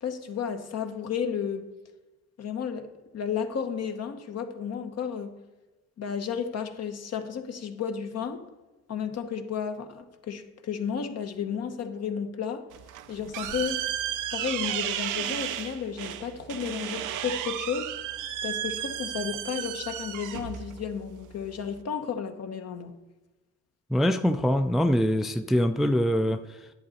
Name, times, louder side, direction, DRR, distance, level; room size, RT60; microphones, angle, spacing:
voice 1, 0.0-1.7 2.4-5.3 6.0-8.4 8.9-12.6 13.1-13.9 14.3-18.0 18.4-23.0, left 7 dB, 55° left, 1.0 m, -33 dB
sound 1, 12.7-21.8, right 11 dB, 90° right, 0.6 m, -34 dB
voice 2, 23.9-26.7, equal, ahead, 0.4 m, -24 dB
10.5 x 7.8 x 4.2 m
cardioid pair, 90°, 30 cm